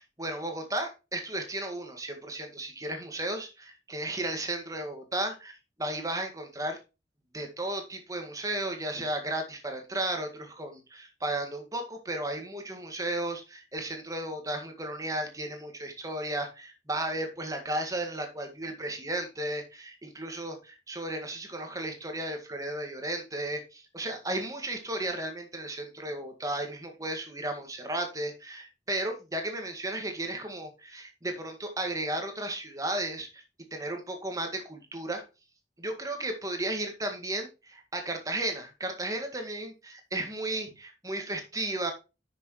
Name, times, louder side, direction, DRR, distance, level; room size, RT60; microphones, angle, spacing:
voice 1, 0.0-6.8 7.3-33.4 33.7-35.2 35.8-41.9, right 1 dB, 20° right, 5 dB, 1.9 m, -34 dB
9.9 x 6.4 x 3.1 m, 0.28 s
head